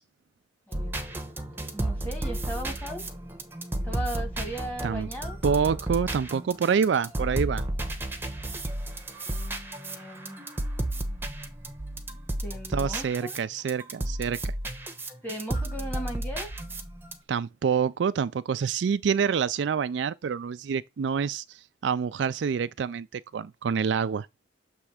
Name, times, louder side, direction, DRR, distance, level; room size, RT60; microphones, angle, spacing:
sound 1, 0.7-13.4 13.7-17.1, right 1 dB, 10° right, 1.0 m, -33 dB
voice 1, 1.7-3.0 3.8-5.4 9.2-10.5 12.4-13.4 15.2-16.6, right 1 dB, 10° left, 2.2 m, -37 dB
voice 2, 5.4-7.6 12.7-14.4 17.3-24.3, right 6 dB, 65° right, 0.3 m, -27 dB
7.1 x 3.3 x 4.8 m
head